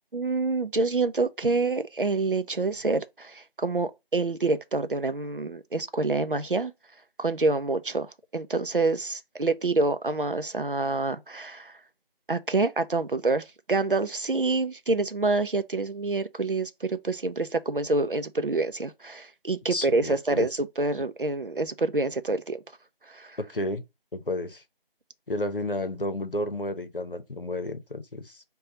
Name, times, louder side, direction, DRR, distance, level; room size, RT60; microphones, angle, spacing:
voice 1, 0.1-6.7 7.2-8.1 8.3-11.7 12.3-22.6 23.1-23.4, right 3 dB, 65° right, 0.5 m, -27 dB
voice 2, 19.7-20.5 23.4-23.8 24.1-24.6 25.3-28.4, left 1 dB, 65° left, 0.8 m, -31 dB
5.0 x 2.3 x 3.9 m
figure-of-eight pair, 180°, 30 cm